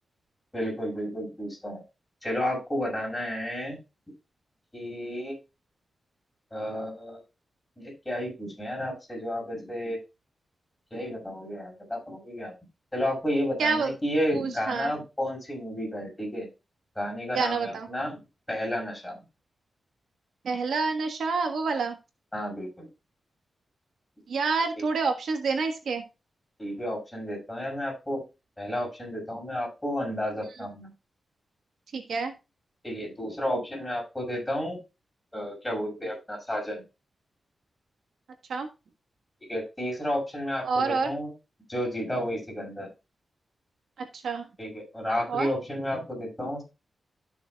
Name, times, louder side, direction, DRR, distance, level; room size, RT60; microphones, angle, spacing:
voice 1, 0.5-1.8 2.2-3.8 4.7-5.4 6.5-7.2 7.8-10.0 10.9-12.5 12.9-16.5 17.0-18.2 18.5-19.2 22.3-22.9 24.8-24.9 26.6-28.2 28.6-30.9 32.8-34.8 35.3-36.8 39.5-41.3 41.7-42.9 44.6-46.6, equal, 10° left, -1 dB, 5.9 m, -32 dB
voice 2, 13.6-13.9 14.3-14.9 17.3-17.9 20.4-22.0 24.3-26.0 31.9-32.3 38.5-38.7 40.6-41.1 44.2-44.4 45.3-45.5, right 4 dB, 85° right, 4 dB, 1.4 m, -27 dB
13.0 x 6.6 x 2.3 m, 0.27 s
wide cardioid pair, 130°, 0 cm